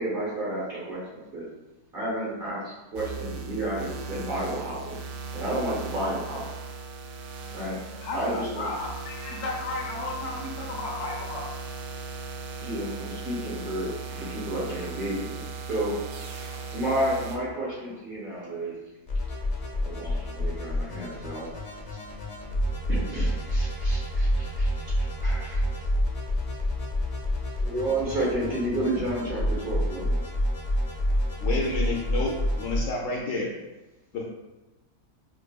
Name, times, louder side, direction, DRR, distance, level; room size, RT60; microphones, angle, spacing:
voice 1, 0.0-1.5 1.9-5.0 5.3-6.4 7.5-7.8 8.1-8.7 12.6-15.9 16.7-18.7 19.8-21.6 22.9-25.6 27.6-30.2, right 1 dB, 40° right, -6 dB, 1.3 m, -31 dB
sound 1, 3.0-17.4, right 4 dB, 70° right, 0.9 m, -38 dB
voice 2, 8.0-11.5, left 2 dB, 85° left, 0 dB, 1.3 m, -34 dB
sound 2, 19.1-32.8, equal, 40° left, 0.5 m, -28 dB
voice 3, 31.4-32.3 32.6-33.5 34.1-34.2, left 3 dB, 70° left, -2 dB, 0.9 m, -29 dB
4.6 x 2.6 x 2.3 m, 1.1 s
omnidirectional pair, 1.6 m